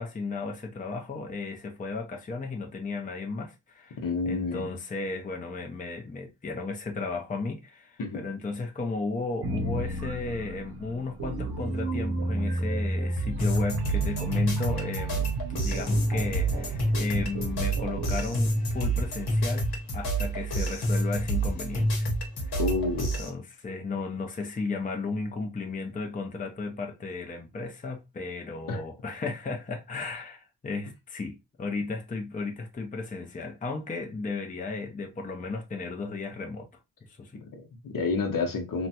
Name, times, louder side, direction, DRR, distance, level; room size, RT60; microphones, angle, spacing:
voice 1, 0.0-4.0 4.2-19.7 19.9-22.1 22.4-22.6 23.2-36.7 37.1-37.4, left 3 dB, 20° left, 0.6 m, -34 dB
voice 2, 4.0-4.7 8.0-8.2 22.6-23.1 28.7-28.8 37.4-38.9, left 4 dB, 60° left, 0.9 m, -29 dB
sound 1, 9.4-19.5, right 2 dB, 85° right, 0.7 m, -33 dB
sound 2, 13.4-23.3, right 1 dB, 85° left, 1.0 m, -28 dB
3.0 x 2.2 x 2.7 m
cardioid pair, 80°, 38 cm